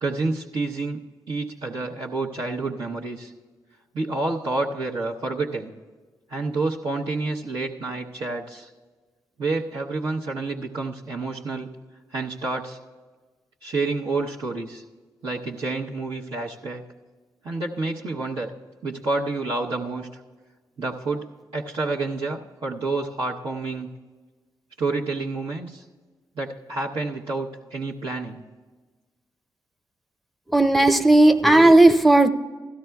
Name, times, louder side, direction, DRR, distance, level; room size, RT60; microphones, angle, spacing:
voice 1, 0.0-1.0 1.3-3.3 3.9-5.7 6.3-8.7 9.4-11.7 12.1-12.8 13.6-14.8 15.2-16.8 17.4-18.5 18.8-20.1 20.8-23.9 24.8-25.8 26.4-28.4, right 3 dB, 70° right, -7 dB, 0.9 m, -29 dB
voice 2, 30.5-32.3, right 2 dB, ahead, 7 dB, 0.6 m, -14 dB
16.5 x 13.0 x 2.3 m, 1.4 s
supercardioid pair, 40°, 9 cm